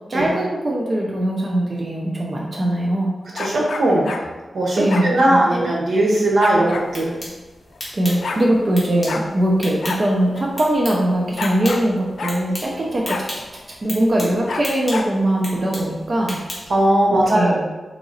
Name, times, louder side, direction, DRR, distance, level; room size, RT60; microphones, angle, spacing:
voice 1, 0.1-3.1 4.8-5.7 7.9-13.3 13.8-16.4 17.3-17.6, right 1 dB, 30° right, -2 dB, 0.5 m, -21 dB
sound 1, 3.3-4.3 4.9-5.1 6.4-6.9 7.8-7.9 8.0-8.4 9.1-9.3 9.8-10.0 10.3-10.4 11.4-11.9 12.2-12.4 13.1-13.3 14.5-15.1, left 4 dB, 80° left, 0.3 m, -28 dB
voice 2, 3.3-4.1 4.5-7.2 16.7-17.6, right 1 dB, 80° right, -4 dB, 1.1 m, -18 dB
sound 2, 6.7-16.9, left 1 dB, 20° left, 1.3 m, -36 dB
3.9 x 3.0 x 3.8 m, 1.2 s
wide cardioid pair, 175°, 0 cm